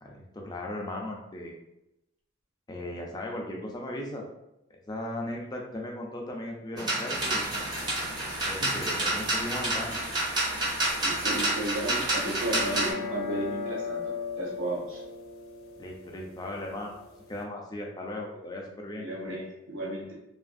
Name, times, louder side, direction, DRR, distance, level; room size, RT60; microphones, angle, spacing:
voice 1, 0.0-1.6 2.7-4.3 4.9-7.6 8.4-10.0 15.8-19.1, left 1 dB, 20° left, 0 dB, 0.4 m, -37 dB
sound 1, 6.8-12.9, right 1 dB, 20° right, 0.6 m, -29 dB
sound 2, 7.1-12.9, right 1 dB, 45° right, 1.1 m, -40 dB
voice 2, 11.0-15.0 19.0-20.1, right 1 dB, 70° right, -3 dB, 0.6 m, -34 dB
sound 3, 12.5-17.4, left 6 dB, 85° left, 0.5 m, -37 dB
2.8 x 2.4 x 2.5 m, 0.89 s
head